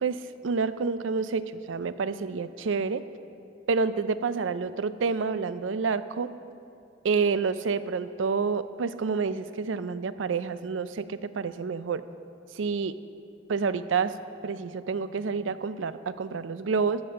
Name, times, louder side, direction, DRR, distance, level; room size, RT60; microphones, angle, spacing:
voice 1, 0.0-3.0 3.7-6.3 7.0-12.0 12.5-13.0 13.5-14.2 14.4-17.0, right 5 dB, 90° right, 14 dB, 0.4 m, -28 dB
13.5 x 6.9 x 6.4 m, 2.5 s
head